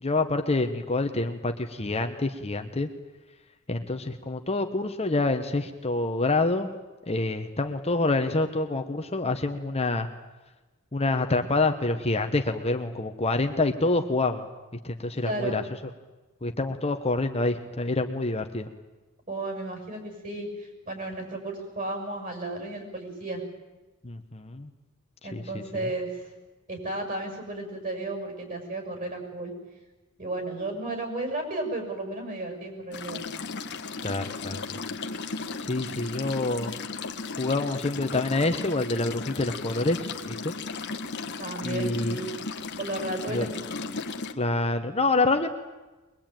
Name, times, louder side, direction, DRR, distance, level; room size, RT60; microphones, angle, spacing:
voice 1, 0.0-2.9 3.7-6.7 7.1-10.1 10.9-14.5 14.8-15.6 16.4-18.7 24.0-24.7 25.3-25.9 34.0-34.8 35.6-36.7 37.4-40.5 41.6-42.2 43.3-43.5 44.3-45.5, left 2 dB, 30° left, 6 dB, 1.1 m, -27 dB
voice 2, 15.2-15.6 19.3-23.4 25.2-26.2 26.7-29.5 30.2-33.2 41.4-42.3 42.8-43.5, right 2 dB, 40° right, 4 dB, 6.4 m, -33 dB
sound 1, 32.9-44.3, left 4 dB, 55° left, 1.3 m, -36 dB
22.5 x 21.0 x 9.1 m, 1.2 s
head